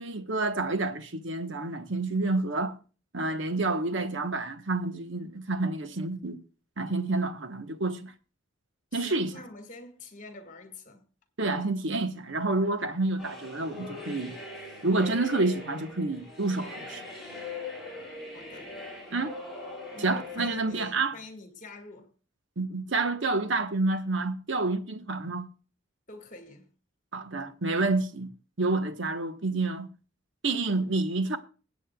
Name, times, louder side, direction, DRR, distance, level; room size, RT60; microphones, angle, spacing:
voice 1, 0.0-2.7 3.1-6.4 6.8-8.1 8.9-9.4 11.4-14.3 14.8-17.1 19.1-19.4 20.0-21.1 22.6-25.5 27.1-28.3 28.6-29.9 30.4-31.4, right 3 dB, 60° right, 1.1 m, -29 dB
voice 2, 8.9-11.1 18.3-18.8 19.9-22.1 25.0-25.1 26.1-26.7, left 3 dB, 35° left, 1.9 m, -46 dB
sound 1, 13.2-20.9, left 3 dB, ahead, 5.8 m, -41 dB
22.0 x 8.5 x 2.3 m
head